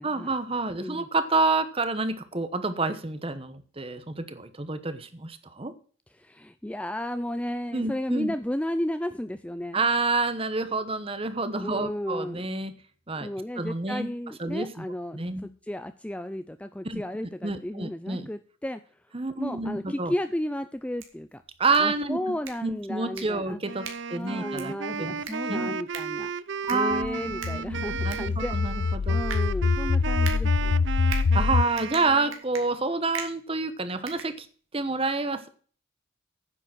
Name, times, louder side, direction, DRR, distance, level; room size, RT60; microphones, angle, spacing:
voice 1, 0.0-5.7 7.7-8.3 9.7-12.7 13.1-13.3 13.6-14.1 14.4-14.8 15.1-15.5 16.8-17.0 17.4-18.3 19.1-20.1 21.6-22.2 22.6-24.7 25.0-25.1 25.5-25.7 26.7-29.2 31.0-34.5 34.7-35.5, right 3 dB, 30° right, 12 dB, 1.0 m, -28 dB
voice 2, 0.8-1.1 6.2-9.8 11.6-12.5 13.2-18.8 19.4-21.4 21.8-23.6 24.1-26.3 26.7-28.6 29.1-30.8, left 1 dB, 5° left, 10 dB, 0.4 m, -33 dB
sound 1, 20.8-34.9, right 6 dB, 85° right, 2.5 m, -43 dB
Wind instrument woodwind instrument, 23.6-32.4, right 6 dB, 60° right, 0.5 m, -34 dB
sound 2, 26.9-31.7, left 4 dB, 65° left, 0.4 m, -25 dB
9.8 x 7.3 x 6.0 m, 0.42 s
head